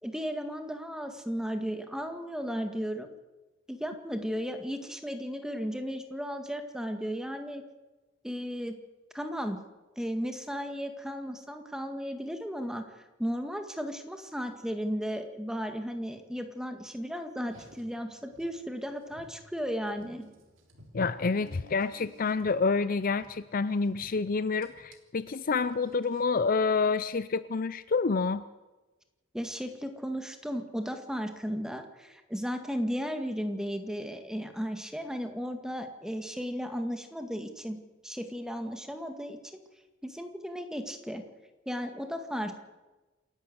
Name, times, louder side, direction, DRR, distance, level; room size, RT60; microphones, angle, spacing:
voice 1, 0.0-3.1 3.7-7.6 8.2-8.8 9.1-9.6 10.0-12.9 13.2-20.2 29.3-37.8 38.0-39.4 40.0-41.2 41.7-42.6, equal, 5° right, 6 dB, 2.0 m, -35 dB
Car, 17.4-26.4, right 1 dB, 70° right, 3.5 m, -57 dB
voice 2, 20.9-28.5, left 4 dB, 45° left, 14 dB, 0.6 m, -28 dB
27.5 x 11.5 x 8.1 m, 1.1 s
head